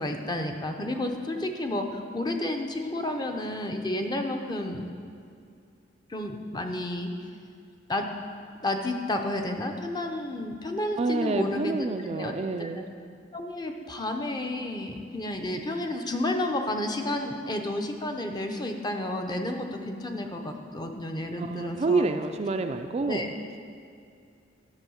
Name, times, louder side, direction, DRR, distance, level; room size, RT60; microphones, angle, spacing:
voice 1, 0.0-4.9 6.1-7.1 7.9-8.1 8.6-12.3 12.6-12.8 13.3-22.1 23.1-23.3, left 1 dB, 20° left, 4 dB, 0.6 m, -31 dB
voice 2, 11.0-12.9 21.4-23.3, right 3 dB, 35° right, 7 dB, 0.3 m, -28 dB
10.5 x 5.4 x 6.4 m, 2.4 s
head